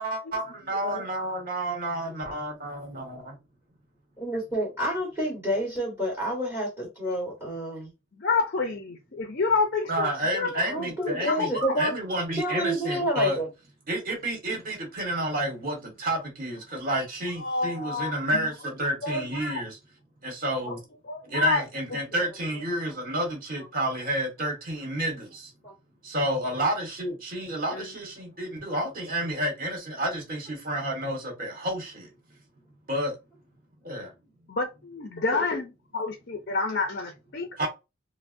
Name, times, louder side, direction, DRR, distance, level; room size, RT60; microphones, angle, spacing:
voice 1, 0.0-3.4 9.9-11.5 11.8-13.4 13.9-19.7 20.2-20.8 21.3-25.5 26.0-32.1 32.9-33.1 33.8-34.1 37.6-37.7, right 1 dB, 45° right, 1.5 m, -30 dB
voice 2, 4.2-7.9 10.6-11.9 12.3-13.5 25.6-25.7, equal, 15° right, 1.8 m, -29 dB
voice 3, 8.1-10.1 10.3-11.8 17.4-18.5 19.0-19.6 20.6-20.8 21.0-21.6 21.9-22.0 27.7-27.9 34.5-37.7, left 3 dB, 50° left, 0.5 m, -29 dB
4.5 x 2.1 x 2.6 m
head